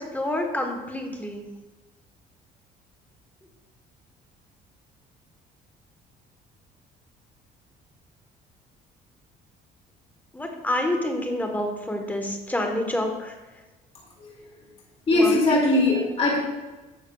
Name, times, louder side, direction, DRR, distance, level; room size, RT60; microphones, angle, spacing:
voice 1, 0.0-1.4 10.3-13.3 15.1-15.3, left 1 dB, 10° left, 3 dB, 1.1 m, -28 dB
voice 2, 14.2-14.6 15.1-16.4, left 2 dB, 35° left, -3 dB, 2.2 m, -21 dB
10.0 x 6.4 x 2.3 m, 1.2 s
cardioid pair, 110°, 17 cm